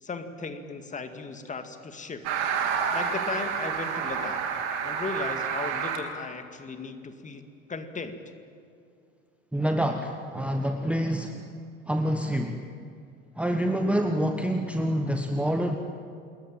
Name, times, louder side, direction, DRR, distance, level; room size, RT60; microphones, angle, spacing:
voice 1, 0.0-2.2 2.9-4.4 4.8-7.4 7.7-8.2, left 4 dB, 20° left, 8 dB, 2.2 m, -36 dB
sound 1, 2.2-6.0, right 7 dB, 55° right, 3.6 m, -29 dB
voice 2, 9.5-11.4 11.9-12.7 13.4-15.8, equal, 5° right, 5 dB, 1.3 m, -27 dB
28.0 x 21.5 x 9.0 m, 2.4 s
figure-of-eight pair, 75°, 41 cm